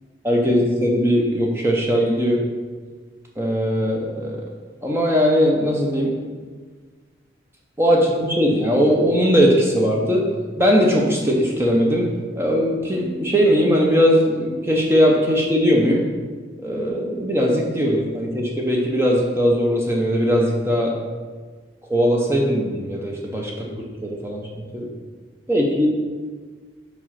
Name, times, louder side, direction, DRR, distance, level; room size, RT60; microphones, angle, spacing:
voice 1, 0.2-2.4 3.4-4.4 4.8-6.1 7.8-10.2 10.6-12.1 12.4-16.0 16.6-20.9 21.9-24.5 24.7-24.9 25.5-25.9, equal, 15° right, -1 dB, 0.7 m, -19 dB
5.5 x 4.8 x 5.7 m, 1.5 s
head